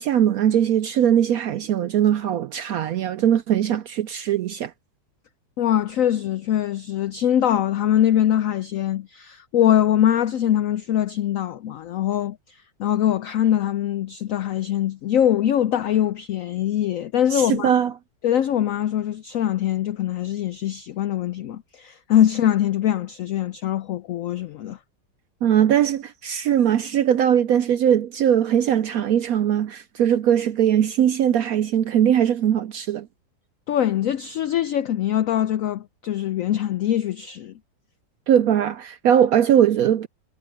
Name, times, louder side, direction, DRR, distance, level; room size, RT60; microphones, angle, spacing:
voice 1, 0.0-4.7 17.3-17.9 25.4-33.1 38.3-40.1, right 9 dB, 75° right, 0.8 m, -20 dB
voice 2, 5.6-17.7 18.2-24.8 33.7-37.5, left 11 dB, 80° left, 0.7 m, -22 dB
omnidirectional pair, 2.0 m